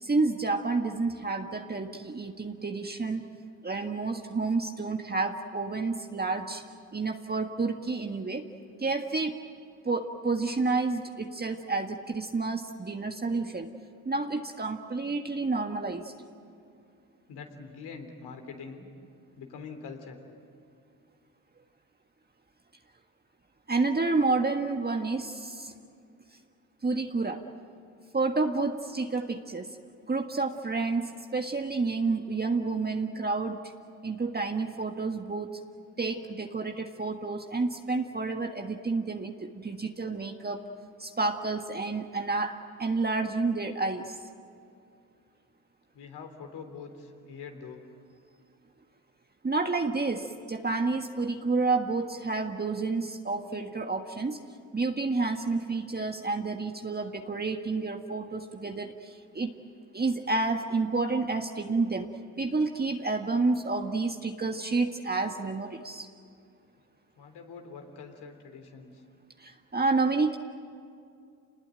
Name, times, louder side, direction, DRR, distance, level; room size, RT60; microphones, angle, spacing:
voice 1, 0.0-3.3 3.6-6.6 6.9-8.4 8.8-9.4 9.8-13.7 14.0-16.1 23.7-25.7 26.8-27.4 28.1-29.8 30.1-33.7 34.0-35.6 36.0-40.6 41.0-44.2 49.4-54.4 54.7-59.5 59.9-62.1 62.4-66.1 69.4-70.4, right 3 dB, 25° right, 4 dB, 1.6 m, -29 dB
voice 2, 17.3-18.8 19.4-20.2 45.9-47.8 67.2-69.0, left 5 dB, 70° left, 4 dB, 3.8 m, -44 dB
29.0 x 20.0 x 9.2 m, 2.4 s
hypercardioid pair, 55°, 41 cm